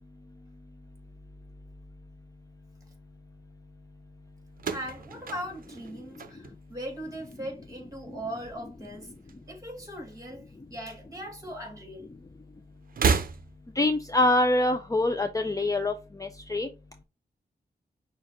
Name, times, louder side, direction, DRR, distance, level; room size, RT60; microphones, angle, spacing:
sound 1, 4.5-6.9 7.2-7.8 8.8-9.9 10.1-10.2 11.4-11.5 12.8-13.9, right 5 dB, 55° right, 0.6 m, -31 dB
voice 1, 4.7-9.1 9.4-10.4 10.7-12.1, equal, 20° right, 2.5 m, -39 dB
voice 2, 13.8-15.9 16.2-16.7, left 2 dB, 20° left, 0.5 m, -24 dB
6.3 x 2.5 x 3.0 m
cardioid pair, 75°, 17 cm